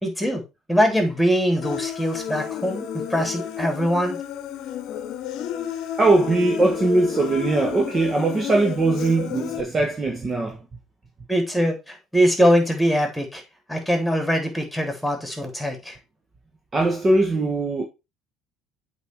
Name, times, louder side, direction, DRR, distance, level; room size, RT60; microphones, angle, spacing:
voice 1, 0.0-0.4 0.7-4.2 11.3-13.4 13.7-16.0, equal, ahead, 3.6 m, -22 dB
Human voice, 1.6-9.6, left 9 dB, 60° left, 0.9 m, -31 dB
voice 2, 6.0-10.6 16.7-17.9, right 2 dB, 30° right, 1.6 m, -20 dB
8.1 x 4.4 x 4.7 m
hypercardioid pair, 65°, 0 cm